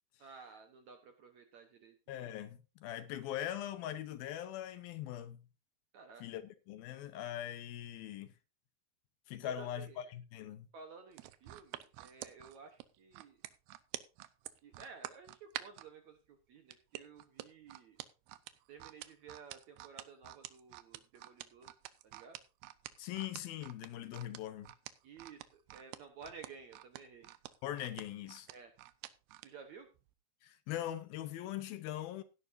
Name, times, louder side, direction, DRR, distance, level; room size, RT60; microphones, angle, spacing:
voice 1, 0.2-2.2 5.9-6.2 9.4-10.0 10.7-13.4 14.6-18.0 18.7-21.7 22.0-22.4 25.0-27.3 28.5-28.7 29.4-29.9, right 5 dB, 65° right, 1.9 m, -54 dB
voice 2, 2.1-5.4 6.2-8.3 9.3-10.7 23.0-24.7 27.6-28.5 30.4-32.2, left 12 dB, 75° left, 2.6 m, -41 dB
sound 1, 11.1-15.9 16.7-29.5 30.0-30.1, right 16 dB, 85° right, 2.8 m, -48 dB
16.5 x 10.5 x 2.7 m
omnidirectional pair, 4.7 m